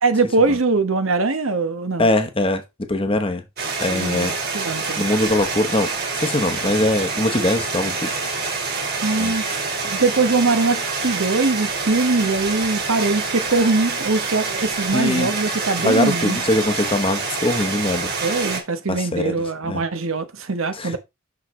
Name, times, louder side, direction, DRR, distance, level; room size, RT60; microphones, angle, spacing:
voice 1, 0.0-2.1 3.9-5.1 9.0-9.4 9.8-16.4 18.2-21.0, right 3 dB, 70° right, 1.1 m, -22 dB
voice 2, 2.0-2.6 2.9-3.4 3.8-4.3 5.0-8.1 9.2-9.3 14.9-15.3 15.8-18.1 18.9-19.3 19.7-19.8 20.7-21.0, left 2 dB, 25° left, 1.0 m, -21 dB
sound 1, 3.6-18.6, right 4 dB, 50° right, 2.4 m, -26 dB
6.2 x 6.1 x 3.2 m
head